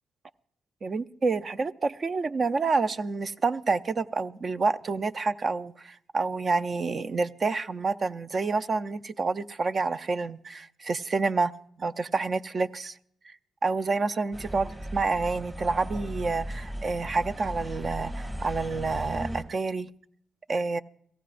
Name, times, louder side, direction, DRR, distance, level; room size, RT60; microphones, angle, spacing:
voice 1, 0.8-11.5 11.8-13.0 13.3-13.4 13.6-19.9 20.5-20.8, right 4 dB, 45° right, 10 dB, 0.6 m, -28 dB
sound 1, 14.3-19.4, equal, 25° right, 2.3 m, -36 dB
29.0 x 17.0 x 2.5 m, 0.69 s
supercardioid pair, 60°, 0 cm